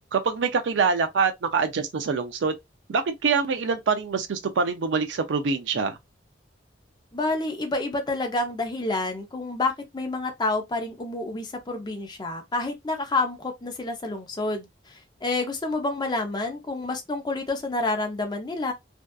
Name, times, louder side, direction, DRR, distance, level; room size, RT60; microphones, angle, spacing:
voice 1, 0.1-2.5 2.9-6.0, right 5 dB, 85° right, 0.4 m, -25 dB
voice 2, 7.1-18.7, left 2 dB, 25° left, 0.6 m, -29 dB
2.6 x 2.3 x 2.2 m
head